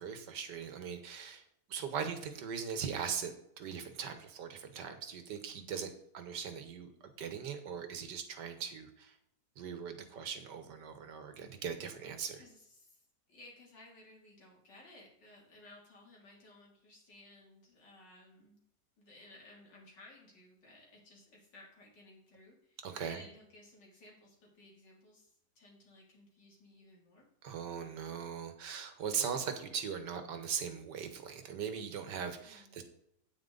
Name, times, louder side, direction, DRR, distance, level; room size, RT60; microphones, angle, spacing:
voice 1, 0.0-1.4 1.7-9.1 9.6-12.4 22.8-23.2 27.4-32.8, right 7 dB, 80° right, 8 dB, 1.8 m, -40 dB
voice 2, 12.2-13.0 13.3-18.6 19.0-27.3 32.4-32.8, left 2 dB, 90° left, -2 dB, 3.6 m, -58 dB
9.1 x 8.6 x 3.9 m, 0.76 s
omnidirectional pair, 1.8 m